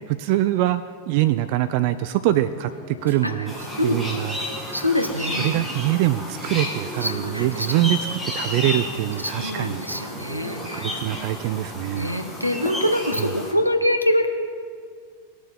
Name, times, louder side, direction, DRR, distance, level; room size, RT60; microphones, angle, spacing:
voice 1, 0.1-3.5 3.8-4.4 5.4-9.8 10.7-12.1, right 14 dB, 45° right, 13 dB, 0.3 m, -24 dB
sound 1, 2.3-12.6, right 1 dB, 25° right, 2.7 m, -40 dB
Shatter, 3.1-4.2 6.4-7.7, right 2 dB, 75° right, 1.4 m, -50 dB
sound 2, 3.5-13.5, left 1 dB, ahead, 2.0 m, -33 dB
voice 2, 4.7-5.5 7.0-7.8 9.2-11.0 12.0-14.3, left 1 dB, 90° right, 7 dB, 0.9 m, -24 dB
19.0 x 6.9 x 4.3 m, 2.1 s
figure-of-eight pair, 90°, 0 cm